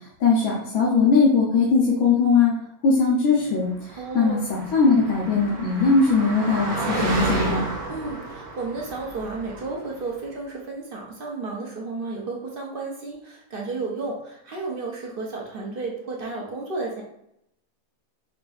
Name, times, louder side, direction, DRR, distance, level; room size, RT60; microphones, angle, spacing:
voice 1, 0.2-2.5 2.8-3.7 4.1-7.7, left 4 dB, 85° left, -5 dB, 1.2 m, -20 dB
voice 2, 3.9-4.5 7.9-17.0, right 3 dB, 50° right, -1 dB, 0.7 m, -32 dB
Car passing by, 4.0-10.0, right 2 dB, 80° right, 1.3 m, -31 dB
4.9 x 2.6 x 2.4 m, 0.77 s
omnidirectional pair, 1.5 m